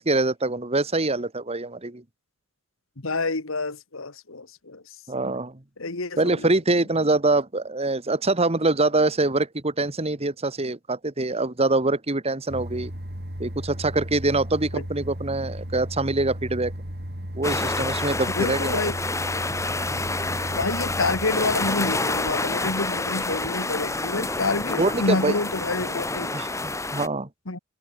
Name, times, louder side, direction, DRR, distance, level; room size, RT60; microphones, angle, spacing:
voice 1, 0.0-2.0 5.1-5.6 6.2-12.9 13.4-16.7 17.3-18.8 24.8-25.4 26.3-27.3, right 2 dB, 30° right, 1.6 m, -24 dB
voice 2, 3.0-4.8 5.8-6.5 14.7-14.8 18.4-19.0 20.5-26.3 27.5-27.6, left 3 dB, 70° left, 1.9 m, -28 dB
sound 1, 12.5-23.1, equal, 50° right, 6.3 m, -36 dB
sound 2, 17.4-27.1, left 2 dB, 15° left, 2.8 m, -28 dB
head